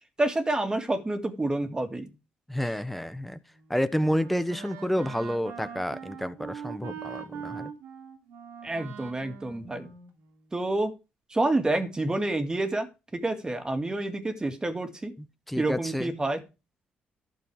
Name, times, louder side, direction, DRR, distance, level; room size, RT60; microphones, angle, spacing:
voice 1, 0.2-2.1 8.6-9.9 10.5-10.9 11.3-15.1 15.6-16.4, right 2 dB, 20° right, 2.3 m, -28 dB
voice 2, 2.5-3.4 3.7-7.7 15.5-16.1, equal, 5° left, 1.1 m, -29 dB
Wind instrument woodwind instrument, 3.5-10.6, right 7 dB, 80° right, 2.6 m, -43 dB
12.0 x 7.0 x 4.8 m
cardioid pair, 80°, 4 cm